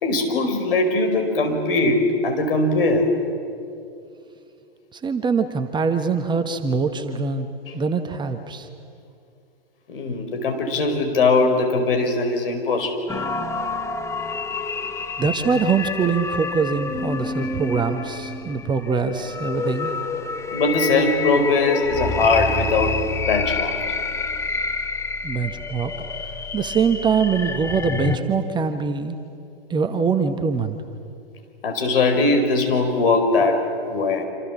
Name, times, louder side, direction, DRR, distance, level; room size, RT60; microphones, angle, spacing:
voice 1, 0.0-3.2 5.3-5.4 7.7-7.8 9.9-13.1 20.5-23.7 31.6-34.3, left 3 dB, 65° left, 4 dB, 4.8 m, -21 dB
voice 2, 4.9-7.5 7.7-8.7 15.2-19.9 25.2-25.9 26.5-29.2 29.7-30.8, right 5 dB, 15° right, 7 dB, 1.2 m, -23 dB
sound 1, 13.1-28.2, left 4 dB, 10° left, 1.1 m, -28 dB
27.0 x 26.5 x 7.3 m, 2.6 s
figure-of-eight pair, 110°, 30 cm